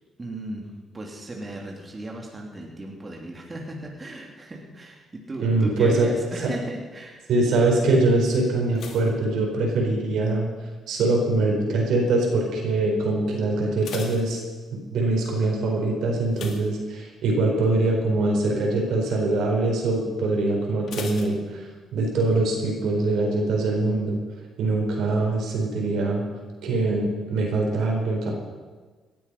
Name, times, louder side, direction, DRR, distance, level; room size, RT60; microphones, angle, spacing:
voice 1, 0.2-7.2, right 1 dB, 25° right, 0 dB, 2.9 m, -36 dB
voice 2, 5.4-6.1 7.3-10.5 10.9-14.4 14.7-21.6 21.9-24.2 24.6-26.3 26.6-28.3, right 2 dB, 80° right, 0 dB, 4.6 m, -23 dB
sound 1, 8.7-10.2 10.5-11.0 11.6-12.0 12.2-12.3 12.7-12.8 13.5-15.0 16.3-17.4 17.8-18.1 18.4-18.5 20.9-22.1 22.3-22.4, left 5 dB, 70° left, 2.3 m, -41 dB
18.0 x 12.5 x 5.4 m, 1.4 s
cardioid pair, 90°, 0 cm